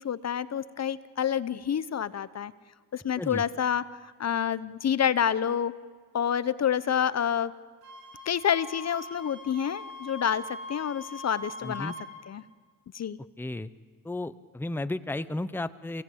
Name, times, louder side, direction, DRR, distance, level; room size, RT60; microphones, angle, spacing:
voice 1, 0.0-2.5 2.9-5.7 6.1-7.5 8.3-11.9 12.3-12.4 12.9-13.2, left 8 dB, 45° left, 16 dB, 0.8 m, -28 dB
Wind instrument woodwind instrument, 7.8-12.1, left 1 dB, 70° right, 6.9 m, -42 dB
voice 2, 11.6-11.9 13.4-13.7 14.0-16.0, left 2 dB, 5° left, 13 dB, 0.8 m, -33 dB
29.0 x 17.5 x 8.6 m, 1.5 s
cardioid pair, 80°, 37 cm